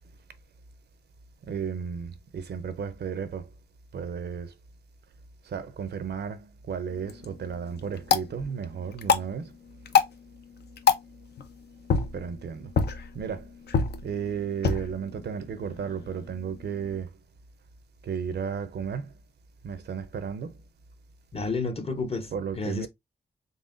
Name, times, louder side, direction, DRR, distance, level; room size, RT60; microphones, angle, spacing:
voice 1, 1.5-3.5 3.9-4.5 5.4-9.5 12.1-12.7 13.1-13.5 14.0-17.1 18.0-19.1 19.6-20.5 22.3-22.9, right 7 dB, 85° right, 0.6 m, -33 dB
sound 1, 6.9-17.0, left 6 dB, 80° left, 0.6 m, -30 dB
voice 2, 21.3-22.9, left 3 dB, 35° left, 0.7 m, -31 dB
4.0 x 3.5 x 2.5 m
wide cardioid pair, 115°, 17 cm